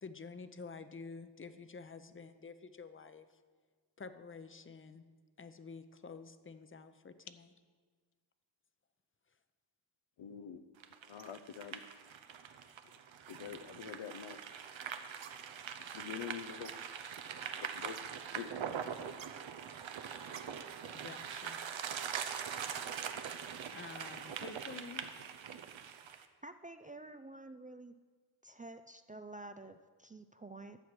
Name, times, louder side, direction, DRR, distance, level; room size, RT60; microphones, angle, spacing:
voice 1, 0.0-3.4 4.0-5.0 5.4-7.5 20.9-21.6 23.7-25.0, left 4 dB, 25° left, 10 dB, 0.7 m, -49 dB
voice 2, 10.2-10.6 11.1-11.8 13.3-14.4 15.9-16.8 17.8-18.0 18.3-18.5, left 8 dB, 85° left, 11 dB, 0.7 m, -45 dB
sound 1, 10.8-26.3, right 8 dB, 80° right, 0.8 m, -43 dB
voice 3, 26.4-28.0 28.4-30.8, right 2 dB, 20° right, 9 dB, 0.3 m, -50 dB
11.5 x 7.3 x 6.1 m, 1.5 s
wide cardioid pair, 85°, 46 cm